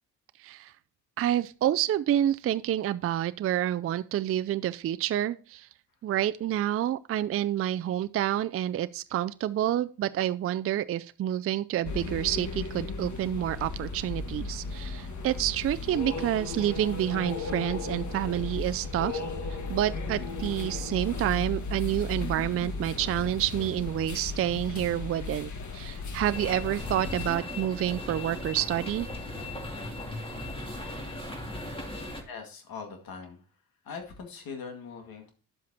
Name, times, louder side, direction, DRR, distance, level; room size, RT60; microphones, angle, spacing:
voice 1, 0.4-0.7 1.2-5.7 6.0-19.2 19.7-29.1, right 12 dB, 40° right, 0.4 m, -28 dB
sound 1, 11.8-27.3, left 3 dB, 50° left, 1.6 m, -35 dB
sound 2, 26.3-32.2, left 1 dB, 15° left, 2.2 m, -37 dB
voice 2, 32.3-33.5 33.8-35.3, left 5 dB, 70° left, 2.1 m, -41 dB
10.0 x 7.5 x 2.8 m
supercardioid pair, 65°, 37 cm